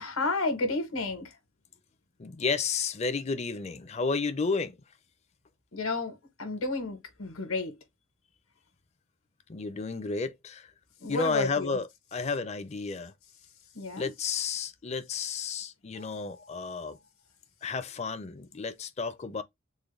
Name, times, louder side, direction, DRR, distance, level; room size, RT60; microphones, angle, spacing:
voice 1, 0.0-1.4 5.7-7.8 11.0-11.8 13.7-14.1 15.9-17.0, left 3 dB, 85° left, 1.2 m, -32 dB
voice 2, 2.2-4.8 9.5-10.7 11.1-13.1 14.0-17.0 17.6-19.4, left 4 dB, 30° left, 0.4 m, -32 dB
3.8 x 2.1 x 3.2 m
head